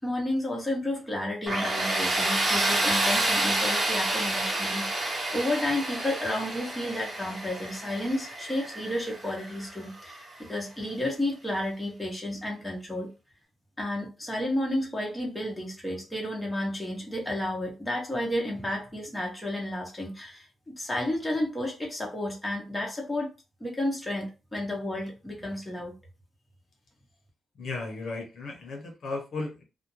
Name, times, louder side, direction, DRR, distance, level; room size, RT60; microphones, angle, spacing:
voice 1, 0.0-13.1 13.8-23.3 23.6-25.9, left 1 dB, 15° left, -1 dB, 0.9 m, -32 dB
Tools, 1.5-10.2, right 1 dB, 30° right, 1.0 m, -29 dB
voice 2, 27.6-29.6, left 3 dB, 70° left, 1 dB, 0.9 m, -35 dB
2.4 x 2.1 x 3.0 m, 0.29 s
cardioid pair, 105°, 0 cm